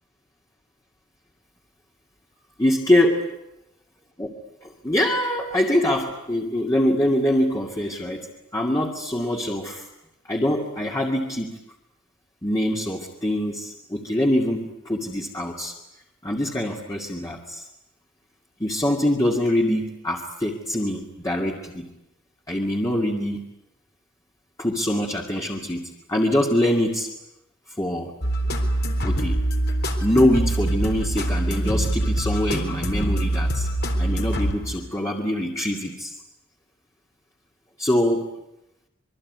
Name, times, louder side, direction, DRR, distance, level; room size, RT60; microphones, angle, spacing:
voice 1, 2.6-3.1 4.2-4.3 4.6-8.3 8.5-9.9 10.2-11.6 12.4-15.7 16.2-17.7 18.6-21.9 22.5-23.4 24.6-27.1 27.8-28.1 29.0-29.4 30.0-33.7 34.0-36.2 37.8-38.3, left 1 dB, 15° left, -1 dB, 2.4 m, -24 dB
sound 1, 28.2-35.0, right 1 dB, 55° left, 3.8 m, -24 dB
26.5 x 23.0 x 9.6 m, 0.89 s
head